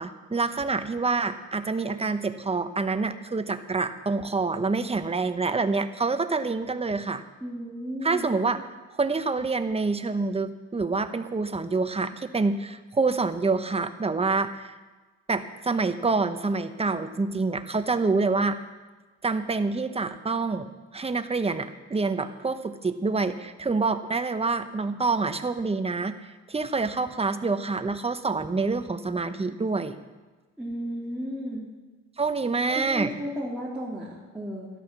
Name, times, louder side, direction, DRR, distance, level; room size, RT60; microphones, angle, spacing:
voice 1, 0.0-7.2 8.0-8.7 8.9-14.7 15.3-18.6 19.2-29.9 32.2-33.1, right 3 dB, 20° right, 9 dB, 1.0 m, -27 dB
voice 2, 7.4-8.3 30.6-31.7 32.7-34.7, equal, 5° right, -7 dB, 2.8 m, -34 dB
13.5 x 12.0 x 6.1 m, 1.3 s
cardioid pair, 90°, 30 cm